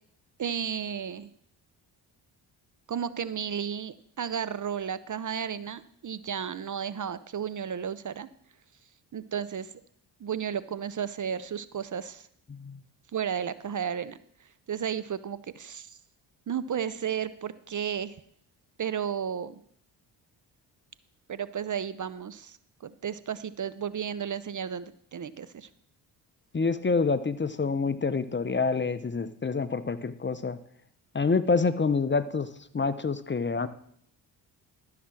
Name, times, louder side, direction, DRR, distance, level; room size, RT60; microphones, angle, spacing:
voice 1, 0.4-1.3 2.9-8.3 9.1-9.7 10.2-12.3 13.1-14.2 14.7-16.0 16.5-18.1 18.8-19.6 21.3-22.6 22.8-25.7, right 8 dB, 40° right, 16 dB, 0.7 m, -33 dB
voice 2, 12.5-12.8 26.5-30.6 31.1-32.5 32.7-33.7, left 4 dB, 25° left, 13 dB, 0.7 m, -27 dB
13.0 x 5.9 x 6.2 m, 0.65 s
supercardioid pair, 50°, 49 cm